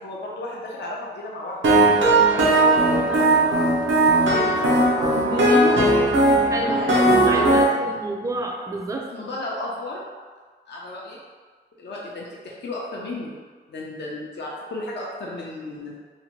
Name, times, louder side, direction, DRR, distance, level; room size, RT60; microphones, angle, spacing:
voice 1, 0.0-1.7 2.3-3.7 4.2-5.9 6.7-7.7 9.1-10.0 10.7-11.2 11.8-13.3 13.7-16.0, left 2 dB, 65° left, -4 dB, 0.5 m, -33 dB
sound 1, 1.6-7.6, right 2 dB, 85° right, 0.5 m, -18 dB
voice 2, 6.5-9.1, right 2 dB, 15° right, 1 dB, 0.3 m, -30 dB
2.7 x 2.1 x 2.9 m, 1.5 s
wide cardioid pair, 75°, 19 cm